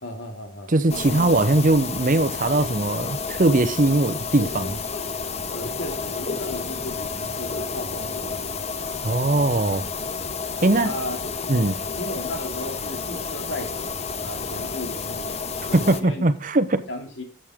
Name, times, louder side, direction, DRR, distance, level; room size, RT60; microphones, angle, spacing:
voice 1, 0.0-0.7 5.5-8.6 10.8-11.2 11.9-13.9 14.2-15.3 15.7-16.3 16.9-17.2, left 1 dB, 75° left, 2.6 m, -35 dB
voice 2, 0.7-4.8 9.0-9.8 10.6-10.9 11.5-11.8 15.7-16.8, right 2 dB, 40° right, 0.8 m, -20 dB
sound 1, 0.9-16.0, left 5 dB, 35° left, 0.8 m, -31 dB
11.5 x 7.6 x 3.6 m
head